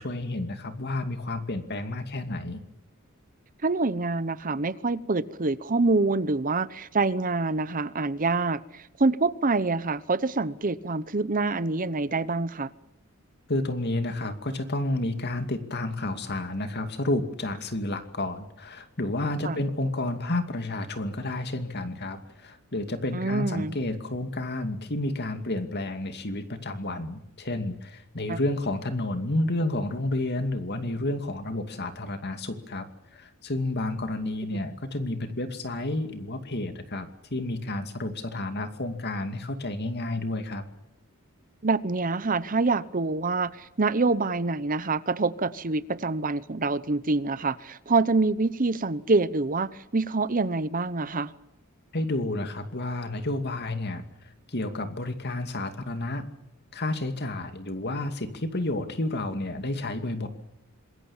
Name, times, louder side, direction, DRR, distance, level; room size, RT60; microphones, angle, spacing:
voice 1, 0.0-2.6 13.5-40.6 51.9-56.3 56.7-60.3, left 2 dB, 50° left, 8 dB, 2.5 m, -30 dB
voice 2, 3.6-12.7 19.4-19.6 23.1-23.8 28.3-28.4 41.6-51.3, right 3 dB, 40° right, 15 dB, 0.9 m, -26 dB
26.5 x 21.5 x 7.3 m, 0.83 s
head